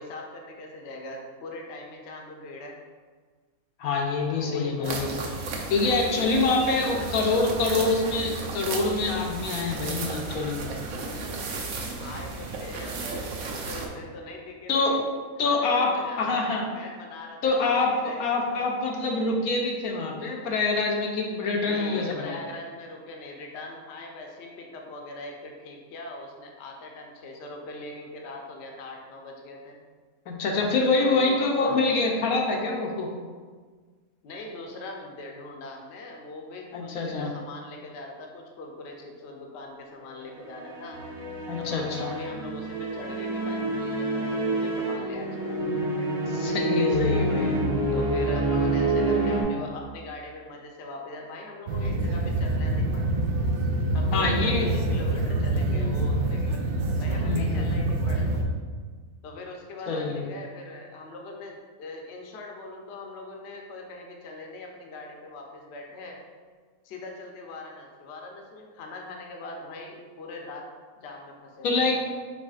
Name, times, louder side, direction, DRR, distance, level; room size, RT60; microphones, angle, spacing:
voice 1, 0.0-2.7 4.3-5.0 5.8-8.0 12.0-15.1 15.4-18.7 21.6-29.8 30.9-31.9 34.2-41.0 41.6-46.1 47.9-53.1 53.9-56.6 57.0-58.3 59.2-66.2 66.8-70.7 71.0-71.8, left 2 dB, 60° left, 1 dB, 0.8 m, -41 dB
voice 2, 3.8-5.1 5.7-10.7 14.7-15.0 15.4-16.7 17.4-22.3 30.3-33.1 36.7-37.3 41.5-42.1 46.3-47.6 54.1-54.7 57.2-57.7 59.9-60.3 71.6-72.0, left 3 dB, 80° left, 1 dB, 1.1 m, -25 dB
sound 1, 4.8-13.9, right 3 dB, 75° right, 1.0 m, -34 dB
sound 2, 40.3-49.4, right 2 dB, 50° right, 1.1 m, -27 dB
sound 3, 51.7-58.4, right 2 dB, 90° right, 0.5 m, -26 dB
4.8 x 4.1 x 2.4 m, 1.5 s
omnidirectional pair, 1.5 m